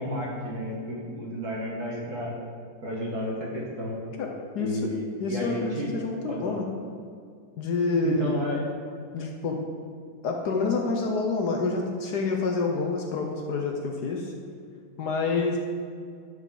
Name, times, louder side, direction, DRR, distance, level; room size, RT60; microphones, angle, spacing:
voice 1, 0.0-2.3 2.8-4.0 4.6-5.0 5.3-5.9 6.3-6.6 8.0-8.6, equal, 45° right, -3 dB, 1.8 m, -32 dB
voice 2, 4.2-4.8 5.2-6.6 7.6-8.3 9.1-9.6 10.2-14.3 15.0-15.6, left 3 dB, 70° left, 1 dB, 1.0 m, -28 dB
11.0 x 5.2 x 3.8 m, 2.2 s
omnidirectional pair, 2.4 m